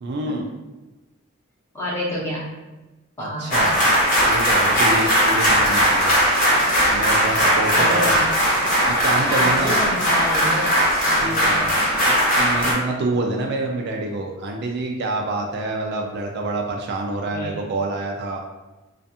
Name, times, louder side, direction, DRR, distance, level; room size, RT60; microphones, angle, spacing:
voice 1, 0.0-0.5 3.2-3.9 4.3-6.1 6.9-8.2 8.9-9.8 11.2-11.7 12.0-18.4, right 2 dB, 55° right, 1 dB, 0.3 m, -27 dB
voice 2, 1.7-2.4 3.2-3.7 7.7-8.2 9.3-10.7 11.0-11.6 17.3-17.6, equal, 15° left, -7 dB, 0.7 m, -28 dB
sound 1, 3.5-12.7, equal, 40° left, 0.8 m, -18 dB
2.5 x 2.3 x 2.6 m, 1.1 s
head